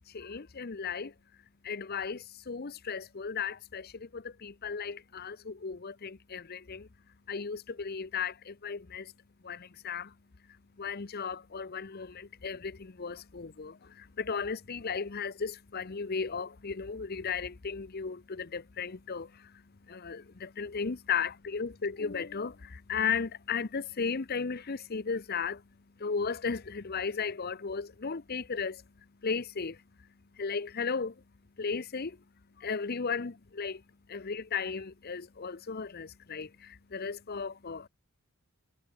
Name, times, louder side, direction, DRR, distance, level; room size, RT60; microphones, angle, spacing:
voice 1, 0.1-1.1 1.6-6.9 7.3-9.1 9.4-10.1 10.8-25.6 26.0-28.8 29.2-29.8 30.4-31.2 31.6-32.2 32.6-33.8 34.1-37.9, left 5 dB, 45° left, 0.8 m, -35 dB
head